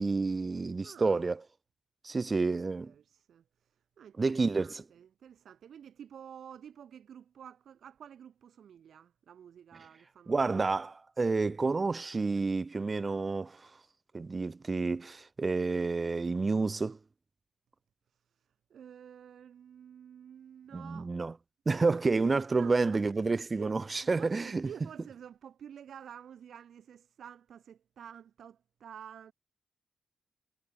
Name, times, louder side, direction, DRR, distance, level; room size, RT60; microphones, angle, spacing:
voice 1, 0.0-1.4 2.0-2.9 4.2-4.8 10.3-13.6 14.1-17.0 20.7-21.3 21.7-24.7, right 3 dB, 30° right, 0.4 m, -29 dB
voice 2, 0.8-1.2 2.8-10.6 18.1-21.1 22.5-29.3, right 8 dB, 75° right, 2.3 m, -51 dB
cardioid pair, 105°, 0 cm